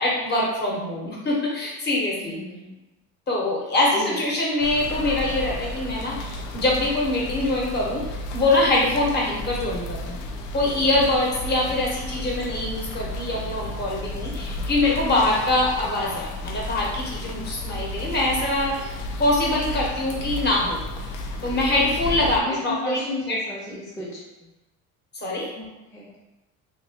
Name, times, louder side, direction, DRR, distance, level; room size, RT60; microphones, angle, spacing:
voice 1, 0.0-2.4 3.3-8.1 8.3-10.2 10.5-20.8 21.4-23.0 23.3-23.4 25.2-25.5, left 2 dB, 35° left, -3 dB, 0.9 m, -24 dB
voice 2, 2.2-2.8 3.9-4.2 22.4-24.2 25.6-25.7 25.9-26.1, left 1 dB, 10° left, -8 dB, 0.6 m, -33 dB
sound 1, 4.6-22.4, left 1 dB, 70° left, 0.5 m, -33 dB
2.9 x 2.8 x 2.8 m, 1.0 s
cardioid pair, 135°, 32 cm